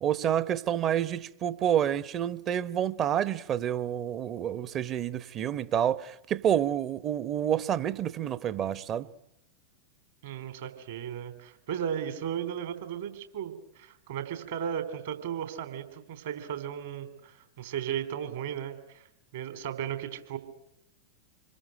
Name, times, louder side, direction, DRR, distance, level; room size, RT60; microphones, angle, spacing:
voice 1, 0.0-9.1, right 10 dB, 30° right, 1.1 m, -28 dB
voice 2, 10.2-19.0 19.3-20.4, right 9 dB, 55° right, 3.5 m, -35 dB
27.0 x 22.5 x 9.0 m
figure-of-eight pair, 90°, 0 cm